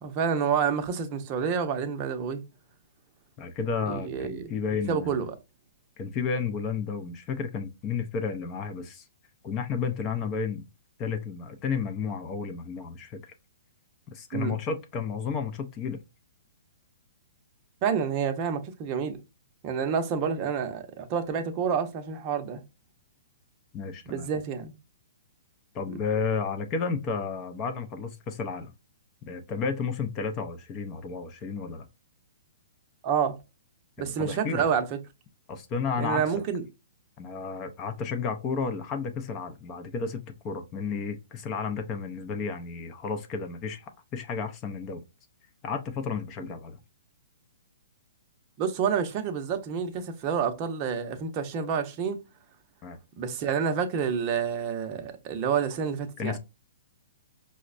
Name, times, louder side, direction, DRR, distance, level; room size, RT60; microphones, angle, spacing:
voice 1, 0.0-2.4 3.9-4.5 4.9-5.3 14.3-14.5 17.8-19.2 19.6-22.6 24.1-24.7 25.9-26.0 33.0-33.4 34.0-34.8 36.0-36.6 48.6-52.2 53.2-56.4, right 7 dB, 30° right, 0.6 m, -28 dB
voice 2, 3.4-5.2 6.0-9.1 9.4-10.6 11.0-13.2 14.1-16.0 23.7-24.3 25.7-28.7 29.3-31.9 34.0-34.7 35.5-36.3 37.2-45.0 45.6-46.8 52.8-53.0 56.2-56.4, left 5 dB, 25° left, 0.5 m, -32 dB
4.9 x 2.1 x 2.4 m
hypercardioid pair, 150°, 0 cm